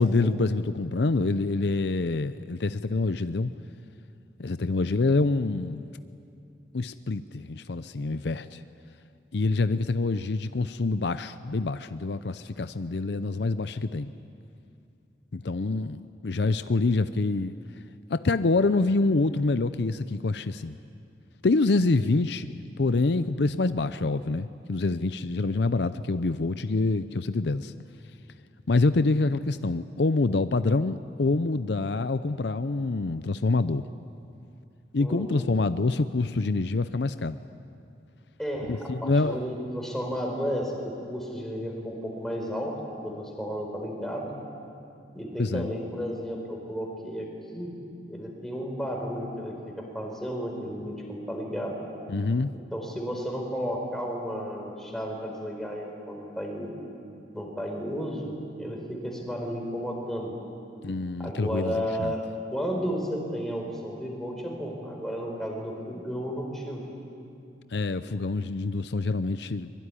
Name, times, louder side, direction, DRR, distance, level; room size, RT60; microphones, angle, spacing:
voice 1, 0.0-3.5 4.4-5.9 6.7-8.6 9.3-14.1 15.3-17.5 18.1-20.7 21.4-27.7 28.7-33.8 34.9-37.4 38.7-39.4 45.4-45.7 52.1-52.5 60.8-62.1 67.7-69.7, left 3 dB, 70° left, 12 dB, 0.6 m, -26 dB
voice 2, 35.0-35.5 38.4-42.7 43.0-44.4 45.1-47.3 47.5-47.8 48.0-51.7 52.7-56.7 57.3-58.3 58.6-60.3 61.2-62.2 62.5-66.8, equal, ahead, 0 dB, 4.4 m, -33 dB
24.0 x 22.5 x 9.9 m, 2.6 s
head